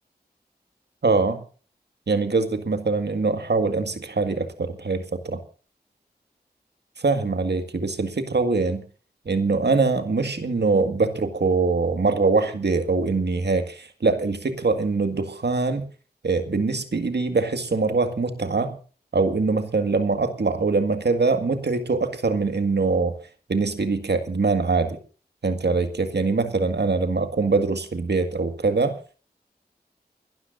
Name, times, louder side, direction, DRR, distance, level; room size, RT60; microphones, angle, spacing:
voice 1, 1.0-1.4 2.1-5.4 7.0-8.8 9.3-15.9 16.2-18.8 19.1-23.1 23.5-25.0 25.4-29.0, right 3 dB, 85° right, 8 dB, 1.9 m, -23 dB
28.5 x 12.5 x 2.6 m, 0.38 s
wide cardioid pair, 45°, 17 cm